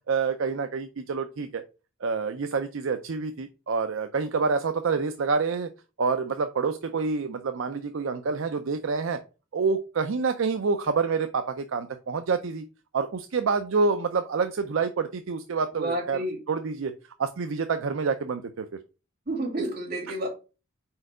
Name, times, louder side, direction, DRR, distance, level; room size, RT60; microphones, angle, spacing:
voice 1, 0.1-1.6 2.0-5.7 6.0-9.2 9.5-12.6 12.9-16.9 17.2-18.7, right 4 dB, 70° right, 0.5 m, -27 dB
voice 2, 15.7-16.4 19.3-20.3, right 1 dB, 45° right, 2.4 m, -30 dB
4.5 x 4.4 x 4.8 m
head